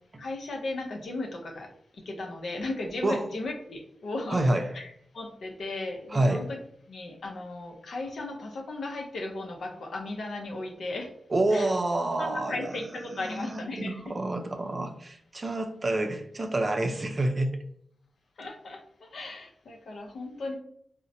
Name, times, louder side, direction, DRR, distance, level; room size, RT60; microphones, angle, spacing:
voice 1, 0.2-4.4 4.7-6.6 6.9-11.1 11.5-11.7 12.1-14.0 18.4-20.6, left 2 dB, 75° left, 2 dB, 0.6 m, -36 dB
voice 2, 4.3-4.7 6.1-6.5 11.3-12.8 13.2-17.5, right 2 dB, 45° right, 5 dB, 0.5 m, -28 dB
3.9 x 2.1 x 2.6 m, 0.66 s
cardioid pair, 50°, 0 cm